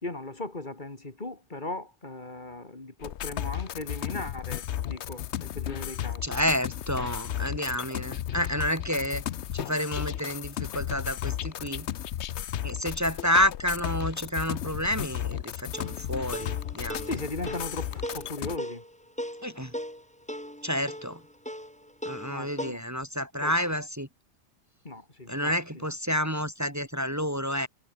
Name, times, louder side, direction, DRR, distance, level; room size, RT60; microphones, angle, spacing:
voice 1, 0.0-6.4 17.1-18.8 22.3-22.8 23.4-23.5 24.8-25.8, left 2 dB, 40° left, 2.8 m, -38 dB
sound 1, 3.0-18.6, left 11 dB, 75° left, 1.0 m, -34 dB
voice 2, 6.2-9.2 9.5-11.9 12.6-17.1 19.4-19.7 20.6-21.2 22.0-24.1 25.3-27.7, equal, 15° right, 2.6 m, -29 dB
sound 2, 15.7-22.7, equal, 5° left, 3.0 m, -39 dB
omnidirectional pair, 1.2 m